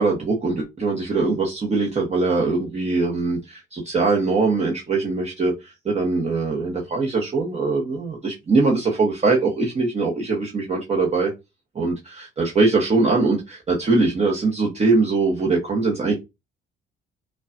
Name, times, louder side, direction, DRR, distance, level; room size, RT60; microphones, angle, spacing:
voice 1, 0.0-11.3 11.7-16.1, right 3 dB, 35° right, 0.9 m, -22 dB
5.1 x 2.3 x 2.5 m
cardioid pair, 90°, 20 cm